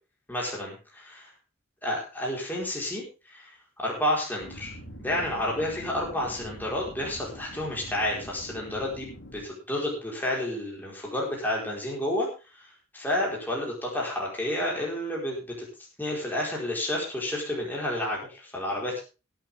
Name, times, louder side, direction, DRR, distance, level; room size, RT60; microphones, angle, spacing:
voice 1, 0.3-1.3 1.8-3.5 3.8-4.7 5.0-12.3 12.9-15.4 16.0-19.0, left 1 dB, 10° left, -3 dB, 4.9 m, -30 dB
sound 1, 4.4-9.4, equal, 65° left, 3.8 m, -44 dB
21.0 x 8.8 x 3.7 m, 0.32 s
head